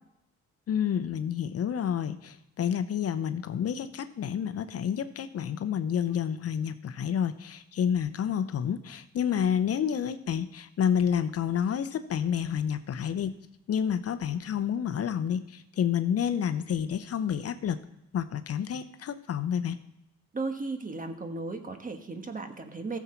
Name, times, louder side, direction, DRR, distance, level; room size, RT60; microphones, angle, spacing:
voice 1, 0.7-13.3 13.7-17.8 18.1-19.8, left 8 dB, 50° left, 11 dB, 0.7 m, -29 dB
voice 2, 20.3-23.0, right 3 dB, 25° right, 7 dB, 1.3 m, -35 dB
14.5 x 7.2 x 4.5 m, 0.85 s
cardioid pair, 90°, 30 cm